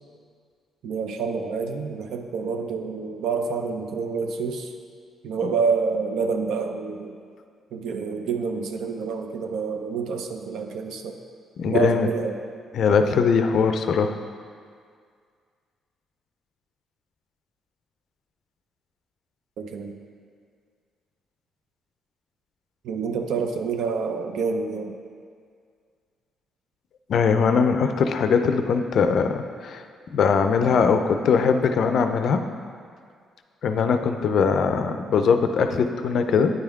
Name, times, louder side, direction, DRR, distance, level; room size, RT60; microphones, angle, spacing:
voice 1, 0.8-4.7 5.2-7.1 7.7-11.2 11.7-12.4 19.6-19.9 22.8-24.9, right 5 dB, 80° right, 5 dB, 0.4 m, -27 dB
voice 2, 11.6-12.1 12.7-14.2 27.1-29.8 30.1-32.4 33.6-36.5, left 5 dB, 65° left, 7 dB, 0.4 m, -21 dB
9.0 x 3.5 x 3.5 m, 2.1 s
cardioid pair, 90°, 0 cm